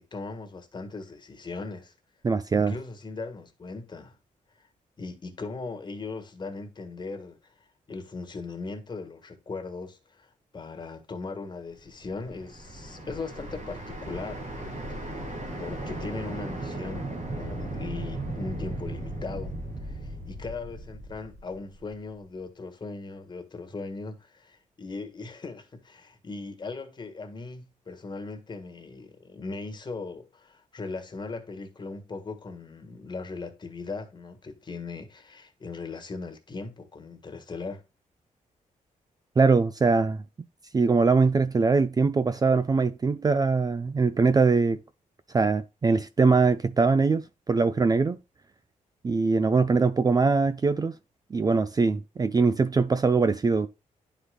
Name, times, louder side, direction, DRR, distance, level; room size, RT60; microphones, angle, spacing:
voice 1, 0.0-1.9 2.5-4.2 5.0-7.5 7.9-15.3 15.6-19.6 19.8-37.8, left 3 dB, 30° left, 1.6 m, -39 dB
voice 2, 2.2-2.7 39.4-40.2 40.7-44.8 45.3-48.2 49.0-51.0 51.3-53.7, right 4 dB, 25° right, 0.5 m, -22 dB
sound 1, 11.9-21.9, right 1 dB, 65° right, 2.9 m, -36 dB
11.0 x 5.0 x 2.3 m
cardioid pair, 110°, 14 cm